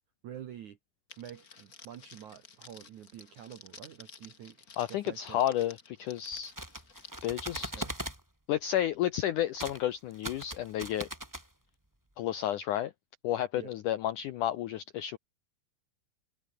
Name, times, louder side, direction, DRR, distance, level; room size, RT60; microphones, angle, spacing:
voice 1, 0.2-0.8 1.2-5.4 7.6-8.0 13.5-13.8, right 10 dB, 60° right, 2.3 m, -48 dB
Crackle, 1.1-7.3, left 5 dB, 45° left, 1.2 m, -53 dB
voice 2, 4.8-6.5 7.2-7.8 8.5-11.1 12.2-12.9 13.2-15.2, left 12 dB, 80° left, 1.8 m, -31 dB
sound 1, 6.3-8.2 9.5-9.8 10.1-11.5, right 1 dB, 5° right, 2.0 m, -40 dB
omnidirectional pair, 4.8 m